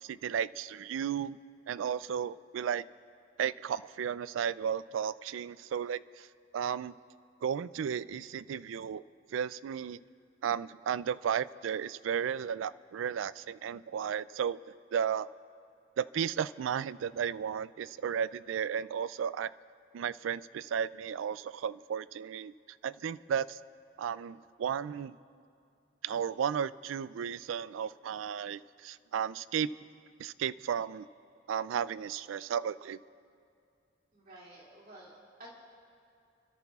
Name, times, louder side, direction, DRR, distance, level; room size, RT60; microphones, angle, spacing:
voice 1, 0.0-1.4 1.7-2.9 3.4-6.3 6.5-7.0 7.4-9.0 9.3-10.0 10.4-15.3 16.0-19.5 19.9-22.5 22.8-23.6 24.0-25.2 26.0-29.7 30.2-31.1 31.5-33.0, right 8 dB, 90° right, 18 dB, 0.3 m, -34 dB
voice 2, 34.1-35.5, right 1 dB, 50° right, -4 dB, 2.4 m, -52 dB
28.5 x 13.5 x 2.4 m, 2.6 s
head